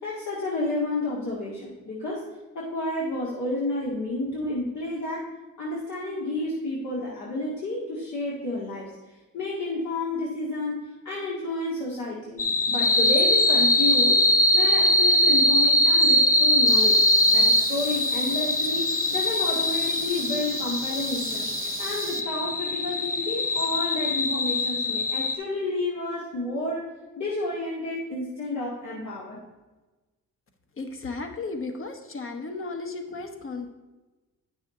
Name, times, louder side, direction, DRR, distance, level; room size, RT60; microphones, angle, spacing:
voice 1, 0.0-2.2 2.5-5.3 5.6-8.9 9.3-12.4 12.7-14.2 14.5-17.0 17.3-21.5 21.8-26.8 27.2-29.4, left 2 dB, 70° left, -6 dB, 2.0 m, -30 dB
sound 1, 12.4-25.4, left 1 dB, 30° left, 0.7 m, -22 dB
sound 2, 16.7-22.2, right 8 dB, 45° right, 0.7 m, -37 dB
voice 2, 30.8-33.7, left 3 dB, 45° left, 6 dB, 1.2 m, -34 dB
9.4 x 6.2 x 3.7 m, 1.2 s
cardioid pair, 90°, 30 cm